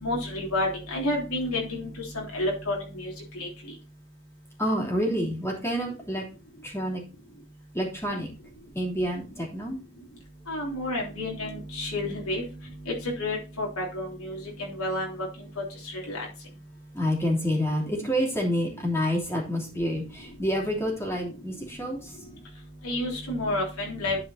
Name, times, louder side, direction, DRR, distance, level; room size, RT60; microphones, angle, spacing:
voice 1, 0.0-3.5 10.5-12.4 12.9-15.3 16.1-16.2 22.8-24.2, left 1 dB, 85° left, -2 dB, 3.3 m, -30 dB
voice 2, 4.6-6.2 6.6-7.0 7.7-8.3 8.7-9.8 16.9-22.1, equal, 10° left, -1 dB, 3.1 m, -28 dB
11.0 x 5.1 x 4.2 m, 0.31 s
head